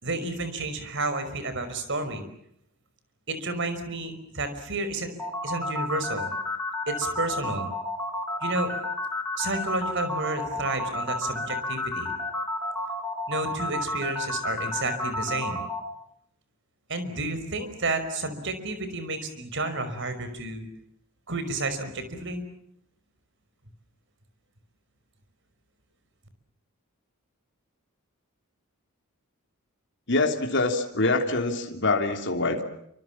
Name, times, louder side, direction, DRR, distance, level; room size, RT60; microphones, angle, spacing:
voice 1, 0.0-2.2 3.3-5.1 5.4-6.3 6.9-7.7 8.4-8.7 9.4-12.1 13.3-15.6 16.9-20.7 21.3-22.4, right 2 dB, 55° right, 10 dB, 5.4 m, -31 dB
sound 1, 5.2-15.8, left 2 dB, 10° left, 5.1 m, -31 dB
voice 2, 30.1-32.6, left 2 dB, 55° left, 4 dB, 3.1 m, -25 dB
28.5 x 26.0 x 7.4 m, 0.72 s
head